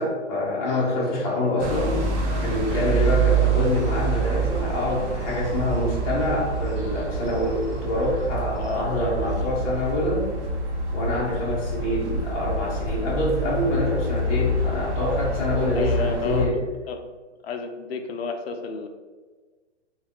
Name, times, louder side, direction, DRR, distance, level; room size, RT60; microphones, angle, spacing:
voice 1, 0.0-2.0 2.4-10.3 10.9-16.6, left 1 dB, 30° left, -6 dB, 1.0 m, -26 dB
sound 1, 0.6-9.8, left 1 dB, 25° right, 1.0 m, -46 dB
sound 2, 1.6-16.5, right 3 dB, 75° right, 0.9 m, -26 dB
voice 2, 8.6-9.0 15.7-16.6 16.9-17.0 17.4-18.9, left 4 dB, 55° left, 5 dB, 0.5 m, -31 dB
3.7 x 2.4 x 3.1 m, 1.4 s
hypercardioid pair, 165°, 36 cm